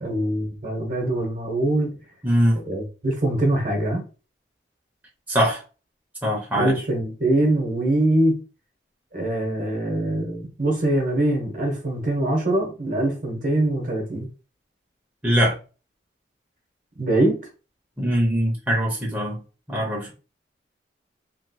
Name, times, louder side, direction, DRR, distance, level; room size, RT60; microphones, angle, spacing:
voice 1, 0.0-1.9 2.6-4.0 6.5-8.4 9.1-14.3 17.0-17.4, right 1 dB, 45° right, 0.9 m, -23 dB
voice 2, 2.2-2.6 5.3-5.6 6.2-6.8 15.2-15.6 18.0-19.4 19.7-20.1, equal, 10° right, 0.7 m, -22 dB
3.0 x 2.9 x 2.3 m
head